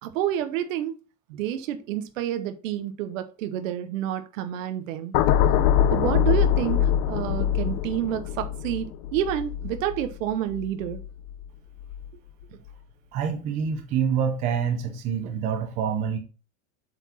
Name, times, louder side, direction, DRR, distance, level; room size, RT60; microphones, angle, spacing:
voice 1, 0.0-0.9 1.3-5.2 5.9-11.0, right 11 dB, 75° right, 1.0 m, -29 dB
sound 1, 5.1-11.4 11.8-12.1, left 10 dB, 40° left, 0.6 m, -24 dB
voice 2, 13.1-16.2, right 7 dB, 20° right, 0.5 m, -26 dB
7.9 x 4.7 x 4.1 m
supercardioid pair, 175°, 40 cm